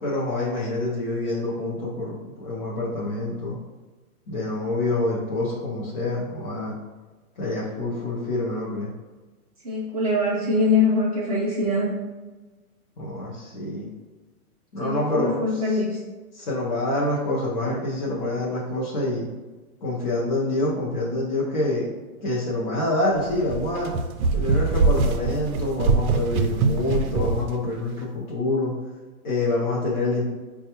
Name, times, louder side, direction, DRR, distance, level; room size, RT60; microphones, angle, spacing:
voice 1, 0.0-3.6 4.3-6.7 7.4-8.9 13.0-13.9 14.7-15.6 16.3-19.3 19.8-21.9 22.2-23.9 24.3-28.7 29.2-30.2, left 2 dB, 35° left, -6 dB, 0.5 m, -26 dB
voice 2, 9.6-11.9 14.8-16.0, left 2 dB, 25° right, -8 dB, 0.5 m, -23 dB
sound 1, 23.2-27.5, right 4 dB, 70° right, 0.5 m, -23 dB
4.2 x 2.2 x 2.8 m, 1.3 s
hypercardioid pair, 160°, 44 cm